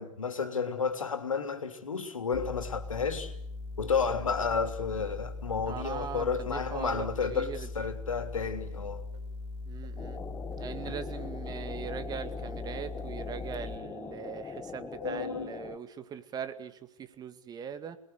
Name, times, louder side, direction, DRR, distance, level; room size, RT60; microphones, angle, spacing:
voice 1, 0.0-3.3 3.8-9.0 10.9-11.0 15.0-15.5, left 5 dB, 80° left, 3.2 m, -32 dB
sound 1, 2.3-13.8, left 2 dB, 35° left, 4.6 m, -40 dB
sound 2, 4.8-5.3 6.0-6.2 6.9-7.0 7.7-7.8 8.4-8.5 9.1-9.2 9.8-9.9 10.5-10.6 11.2-11.3 11.8-11.9, right 5 dB, 55° right, 5.0 m, -57 dB
voice 2, 5.7-7.7 9.7-10.2 10.6-18.0, right 8 dB, 25° right, 2.1 m, -40 dB
sound 3, 10.0-15.8, left 6 dB, 15° left, 1.4 m, -42 dB
29.5 x 21.0 x 8.3 m
figure-of-eight pair, 105°, 17 cm